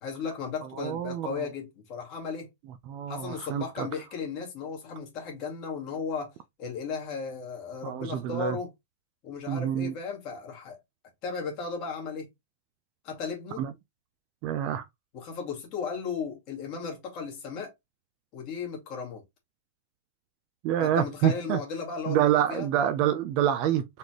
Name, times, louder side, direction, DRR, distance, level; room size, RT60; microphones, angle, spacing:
voice 1, 0.0-2.5 3.1-6.3 6.6-8.7 9.2-10.8 11.2-12.3 13.0-13.6 15.1-17.7 18.3-19.2 20.8-22.2 22.5-22.7, left 5 dB, 30° left, 1.9 m, -35 dB
voice 2, 0.8-1.4 2.9-3.9 7.8-8.6 9.5-9.9 13.6-13.7 14.4-14.8 20.6-21.6 22.1-23.8, right 10 dB, 30° right, 0.4 m, -27 dB
4.1 x 3.2 x 2.9 m
supercardioid pair, 170°, 0 cm